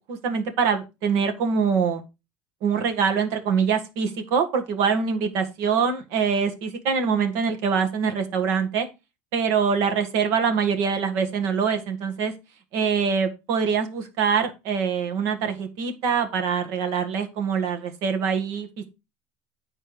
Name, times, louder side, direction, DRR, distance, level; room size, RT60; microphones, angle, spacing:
voice 1, 0.1-2.0 2.6-8.9 9.3-12.3 12.7-18.7, right 6 dB, 60° right, 6 dB, 1.8 m, -24 dB
9.7 x 4.5 x 5.0 m, 0.26 s
cardioid pair, 155°, 6 cm